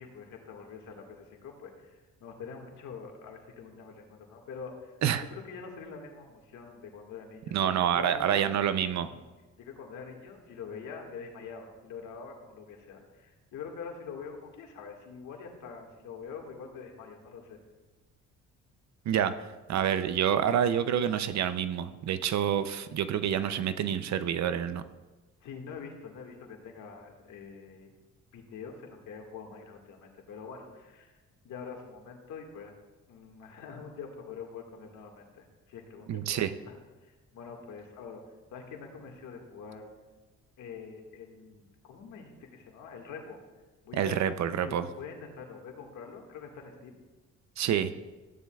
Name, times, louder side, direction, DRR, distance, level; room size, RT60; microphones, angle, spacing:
voice 1, 0.0-4.9 5.2-8.5 9.0-9.3 9.6-17.6 25.4-27.9 28.3-32.7 33.1-38.2 38.5-39.9 40.6-43.4 43.8-44.3 44.6-47.0, left 5 dB, 80° left, 2 dB, 1.9 m, -45 dB
voice 2, 7.5-9.1 19.1-24.8 36.1-36.5 43.9-44.9 47.6-47.9, right 9 dB, 65° right, 12 dB, 0.7 m, -28 dB
14.5 x 10.0 x 2.4 m, 1.2 s
cardioid pair, 90°, 30 cm